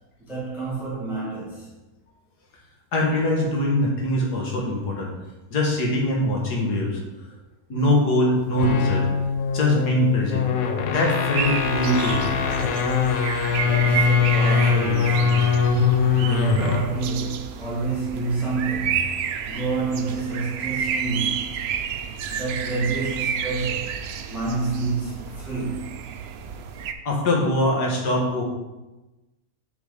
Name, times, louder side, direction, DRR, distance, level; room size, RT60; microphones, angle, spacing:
voice 1, 0.2-1.7 13.6-15.7 16.1-19.2 19.5-21.5 22.3-24.0 24.2-26.0, right 3 dB, ahead, -6 dB, 1.5 m, -28 dB
voice 2, 2.9-5.1 5.5-7.0 7.7-9.1 9.5-10.5 10.9-12.3 27.1-28.4, left 1 dB, 85° left, -1 dB, 1.9 m, -22 dB
sound 1, 8.4-16.9, left 6 dB, 65° left, 1.1 m, -22 dB
sound 2, 11.3-26.9, right 7 dB, 90° right, 0.5 m, -30 dB
7.3 x 4.0 x 5.0 m, 1.1 s
omnidirectional pair, 1.7 m